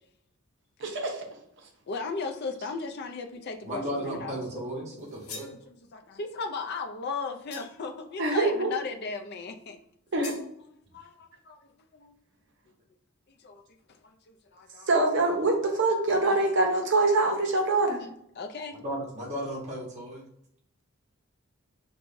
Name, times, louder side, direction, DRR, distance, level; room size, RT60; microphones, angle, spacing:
voice 1, 0.8-1.2 8.2-8.7 10.1-10.3 14.9-18.0, right 2 dB, 55° right, 1 dB, 0.8 m, -24 dB
voice 2, 1.9-5.1 5.5-9.8 10.9-11.6 11.9-12.1 13.4-13.6 14.0-14.9 15.7-15.8 16.1-16.3 18.4-18.8, left 4 dB, 50° left, 5 dB, 0.4 m, -37 dB
voice 3, 3.6-5.5 18.8-20.2, equal, 30° right, -3 dB, 1.1 m, -35 dB
sound 1, 5.0-5.6 7.5-7.9 10.2-10.5, left 5 dB, 80° left, 0.7 m, -43 dB
4.6 x 2.2 x 2.6 m, 0.72 s
head